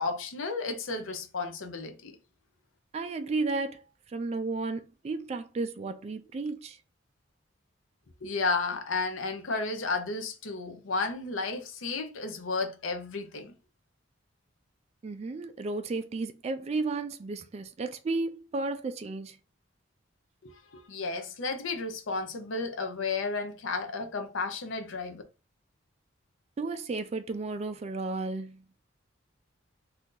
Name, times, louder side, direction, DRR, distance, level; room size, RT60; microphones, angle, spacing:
voice 1, 0.0-2.1 8.2-13.6 20.4-25.2, left 3 dB, 80° left, 0.7 m, -33 dB
voice 2, 2.9-6.8 15.0-19.4 26.6-28.6, right 3 dB, 30° right, 0.3 m, -33 dB
2.7 x 2.5 x 3.7 m
head